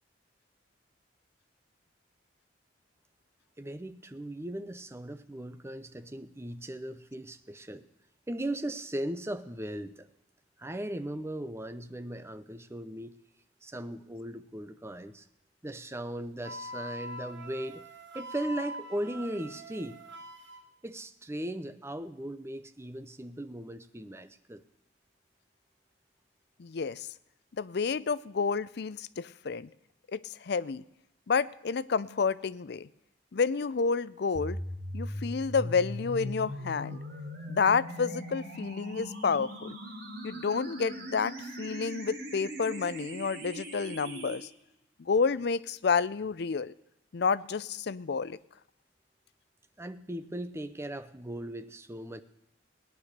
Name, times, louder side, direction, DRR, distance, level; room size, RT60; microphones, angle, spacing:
voice 1, 3.6-7.8 8.3-10.1 10.6-13.1 13.6-15.2 15.6-17.8 18.1-20.0 20.8-24.6 49.8-52.2, right 1 dB, 15° right, 11 dB, 0.7 m, -38 dB
Wind instrument woodwind instrument, 16.4-20.6, equal, 80° right, 1.5 m, -43 dB
voice 2, 26.6-27.1 27.6-29.7 30.1-30.8 31.3-32.9 33.3-34.6 34.9-37.0 37.5-39.8 40.2-44.5 45.0-46.7 47.1-48.4, left 5 dB, 60° left, 18 dB, 0.5 m, -30 dB
sound 1, 34.3-44.4, equal, 60° right, 3.3 m, -40 dB
17.5 x 10.5 x 6.6 m, 0.87 s
head